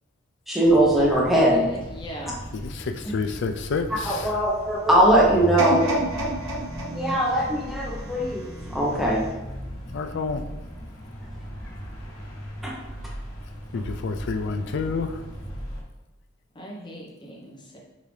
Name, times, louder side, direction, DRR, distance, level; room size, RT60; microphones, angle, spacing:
voice 1, 0.5-1.6 4.0-5.8 6.9-9.2 12.6-12.8 13.7-13.8, right 1 dB, ahead, -4 dB, 0.9 m, -20 dB
sound 1, 0.6-15.8, equal, 90° left, 1.2 m, -37 dB
voice 2, 1.5-2.4 16.5-17.8, equal, 25° left, -2 dB, 1.0 m, -40 dB
voice 3, 2.5-4.3 9.9-10.4 13.7-15.2, left 4 dB, 60° left, 8 dB, 0.4 m, -29 dB
sound 2, 5.6-8.6 9.2-9.3, right 1 dB, 75° right, 0.9 m, -29 dB
5.2 x 2.8 x 3.2 m, 1.1 s
head